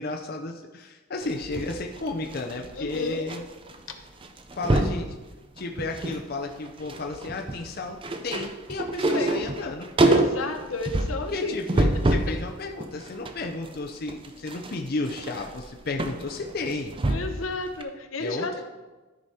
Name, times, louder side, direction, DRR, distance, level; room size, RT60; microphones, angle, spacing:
voice 1, 0.0-3.4 4.5-5.1 5.6-8.0 8.2-9.9 11.3-16.9 18.2-18.6, left 2 dB, 50° left, 2 dB, 0.6 m, -33 dB
sound 1, 1.2-3.4 3.7-3.9 4.2-5.0 5.6-6.2 6.5-12.4 12.8-17.5 17.8-17.9, right 2 dB, 25° right, 0.5 m, -26 dB
voice 2, 2.7-3.2 3.9-4.0 9.1-9.3 10.0-11.6 11.9-12.3 17.1-18.6, left 3 dB, 80° left, 6 dB, 0.9 m, -32 dB
13.5 x 5.0 x 4.3 m, 1.2 s
head